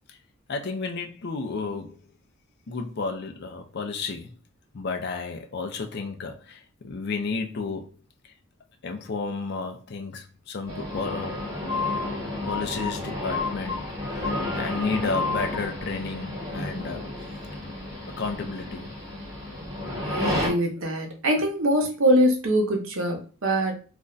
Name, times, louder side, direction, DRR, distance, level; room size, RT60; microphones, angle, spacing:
voice 1, 0.5-2.0 2.7-4.3 4.7-7.9 8.8-11.4 12.4-17.1 18.1-18.9, left 4 dB, 50° left, 0.4 m, -32 dB
sound 1, 10.7-20.5, left 2 dB, 15° right, 0.9 m, -31 dB
voice 2, 20.0-23.8, equal, 70° right, 0.8 m, -23 dB
2.4 x 2.1 x 3.8 m
head